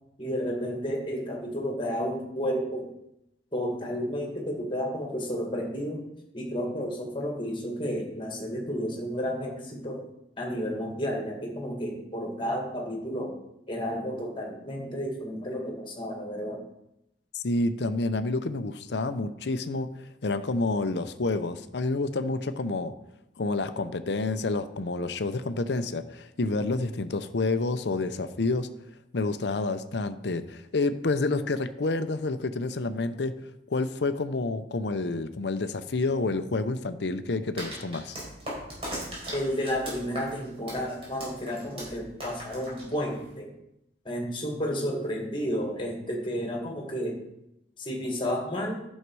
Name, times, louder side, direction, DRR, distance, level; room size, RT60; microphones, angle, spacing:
voice 1, 0.2-2.9 3.5-6.0 6.3-10.0 10.4-13.3 13.7-16.6 39.3-43.5 44.0-47.2 47.8-48.8, equal, 30° left, 1 dB, 2.1 m, -31 dB
voice 2, 17.3-22.9 23.4-28.7 29.1-33.3 33.7-38.2, left 3 dB, 70° left, 11 dB, 0.6 m, -29 dB
sound 1, 37.6-43.3, equal, 30° right, 4.2 m, -39 dB
11.0 x 6.5 x 4.7 m, 0.84 s
head